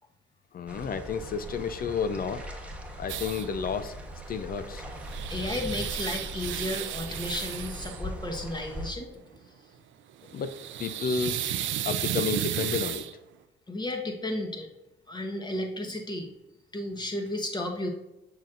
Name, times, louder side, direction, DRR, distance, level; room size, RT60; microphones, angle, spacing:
voice 1, 0.5-2.5 3.0-3.9 4.3-4.8 10.3-10.5 10.8-11.4 11.8-13.1, left 6 dB, 45° left, 11 dB, 0.5 m, -31 dB
sound 1, 0.7-8.9, equal, 5° right, 1.1 m, -40 dB
sound 2, 3.1-3.5 4.7-8.0 10.3-13.1, right 11 dB, 75° right, 0.5 m, -33 dB
voice 2, 5.3-9.1 13.7-14.7 15.1-16.3 16.7-17.9, left 1 dB, 20° left, 3 dB, 1.2 m, -33 dB
7.2 x 5.9 x 2.5 m, 0.96 s
cardioid pair, 90°, 20 cm